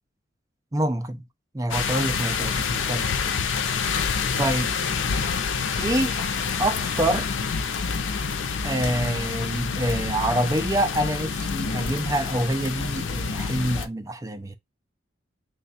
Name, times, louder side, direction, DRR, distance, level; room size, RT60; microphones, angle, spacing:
voice 1, 0.7-1.2 1.5-3.2 4.4-4.7 5.8-6.3 6.6-7.3 8.6-14.6, right 1 dB, 20° right, 0.5 m, -26 dB
sound 1, 1.7-13.9, left 5 dB, 90° left, 0.5 m, -27 dB
3.2 x 2.3 x 4.1 m
head